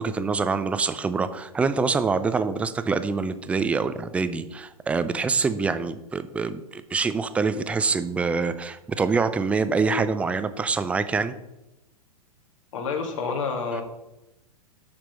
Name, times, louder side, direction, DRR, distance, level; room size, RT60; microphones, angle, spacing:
voice 1, 0.0-11.3 13.7-13.8, right 4 dB, 5° right, 12 dB, 0.3 m, -25 dB
voice 2, 12.7-13.8, left 5 dB, 55° left, 4 dB, 1.9 m, -28 dB
7.3 x 6.0 x 5.1 m, 0.93 s
figure-of-eight pair, 105°, 19 cm